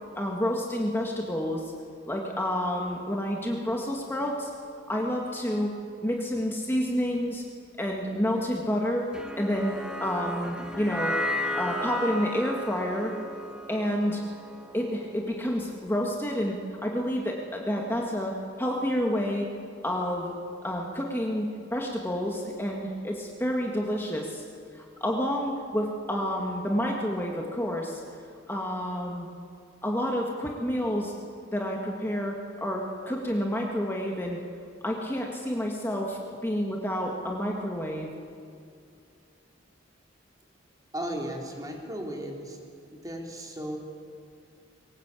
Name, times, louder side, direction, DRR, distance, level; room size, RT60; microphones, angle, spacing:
voice 1, 0.2-1.7 2.1-4.5 4.9-5.7 6.0-7.4 7.8-9.1 9.4-9.7 10.0-11.2 11.6-13.1 13.7-14.2 14.7-16.6 16.8-19.5 19.8-20.3 20.6-24.4 24.7-28.0 28.5-29.3 29.8-31.1 31.5-34.4 34.8-38.1, equal, 10° left, -1 dB, 1.9 m, -29 dB
sound 1, 9.1-15.5, left 1 dB, 5° right, 1.7 m, -34 dB
voice 2, 40.9-42.6 43.0-43.8, right 1 dB, 20° right, 0 dB, 3.5 m, -35 dB
22.5 x 19.0 x 8.4 m, 2.4 s
head